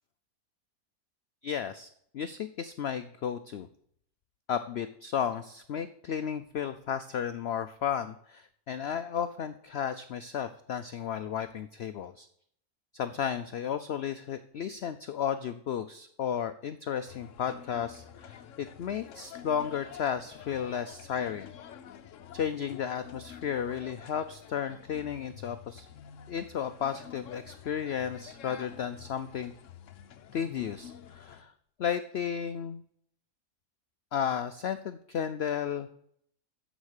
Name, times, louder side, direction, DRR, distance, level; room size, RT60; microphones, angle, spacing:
voice 1, 1.4-3.7 4.5-12.3 12.9-21.5 22.3-25.9 26.3-29.5 30.3-31.5 31.8-32.8 34.1-35.9, left 8 dB, 85° left, 10 dB, 0.5 m, -33 dB
sound 1, 17.1-31.4, left 9 dB, 60° left, 0.9 m, -49 dB
13.5 x 5.2 x 6.5 m, 0.68 s
omnidirectional pair, 1.7 m